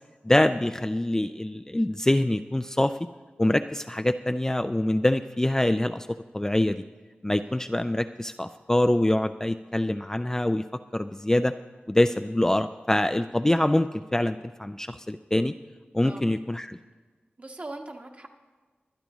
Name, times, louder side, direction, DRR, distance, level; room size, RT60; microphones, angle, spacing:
voice 1, 0.2-3.0 3.4-6.1 6.3-6.8 7.2-10.6 10.9-11.5 11.9-15.5 15.9-16.8, left 1 dB, 15° left, 9 dB, 0.3 m, -25 dB
voice 2, 17.4-18.3, right 2 dB, 40° right, 3 dB, 1.2 m, -41 dB
23.5 x 10.5 x 3.0 m, 1.4 s
wide cardioid pair, 85°, 4 cm